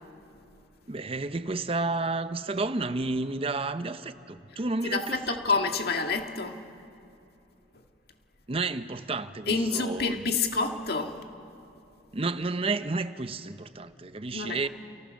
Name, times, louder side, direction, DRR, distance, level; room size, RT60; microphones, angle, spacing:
voice 1, 0.9-5.4 8.5-10.2 12.1-14.7, right 3 dB, 35° right, 11 dB, 0.7 m, -31 dB
voice 2, 4.8-6.6 9.5-11.2 14.3-14.6, left 3 dB, 60° left, 4 dB, 2.0 m, -28 dB
29.5 x 28.0 x 6.5 m, 2.7 s
head